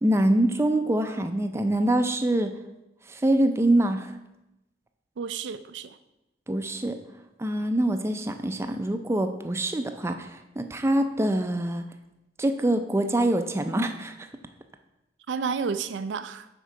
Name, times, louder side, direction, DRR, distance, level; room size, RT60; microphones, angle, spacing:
voice 1, 0.0-2.5 3.1-4.1 6.5-7.0 7.4-11.8 12.4-14.3, right 1 dB, 15° right, 7 dB, 0.4 m, -25 dB
voice 2, 5.2-6.0 15.3-16.5, right 5 dB, 90° right, 11 dB, 0.4 m, -31 dB
6.4 x 4.5 x 5.1 m, 0.93 s
head